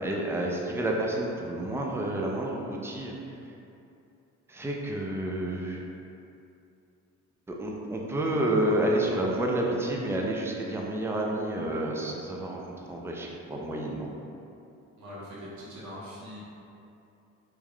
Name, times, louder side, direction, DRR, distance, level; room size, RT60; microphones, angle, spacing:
voice 1, 0.0-3.1 4.5-5.8 7.5-12.6 12.9-14.1, right 1 dB, 10° right, -1 dB, 0.4 m, -29 dB
voice 2, 15.0-16.4, equal, 70° right, -8 dB, 1.1 m, -42 dB
3.1 x 2.3 x 3.6 m, 2.7 s
cardioid pair, 90°, 30 cm